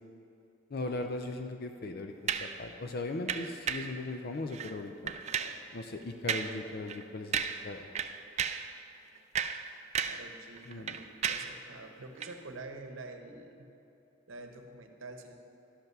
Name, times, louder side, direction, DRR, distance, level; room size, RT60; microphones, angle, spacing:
voice 1, 0.7-5.1 5.7-7.9 10.7-10.9, left 2 dB, 50° left, 5 dB, 0.5 m, -38 dB
sound 1, 2.3-2.6 3.3-4.0 4.5-4.7 5.1-5.6 6.3-6.6 6.9-7.0 7.3-7.7 8.0-8.7 9.2-10.3 10.6-11.6 12.2-12.3, right 7 dB, 35° right, 0.3 m, -34 dB
voice 2, 5.3-5.7 10.0-13.7 14.3-15.4, right 2 dB, 80° right, 5 dB, 0.9 m, -47 dB
11.5 x 5.5 x 6.0 m, 2.8 s
head